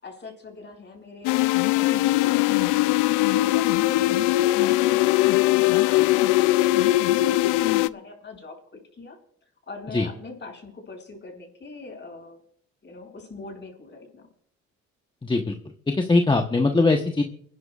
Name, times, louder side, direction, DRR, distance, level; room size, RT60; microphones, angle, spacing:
voice 1, 0.0-2.9 3.4-9.2 9.7-12.4 12.8-14.3, left 3 dB, 35° left, 2 dB, 6.4 m, -42 dB
sound 1, 1.2-7.9, left 17 dB, 80° left, 0.5 m, -20 dB
voice 2, 15.2-15.5 16.0-17.2, left 3 dB, 15° left, 4 dB, 1.1 m, -21 dB
29.5 x 11.0 x 2.4 m, 0.64 s
supercardioid pair, 75°, 30 cm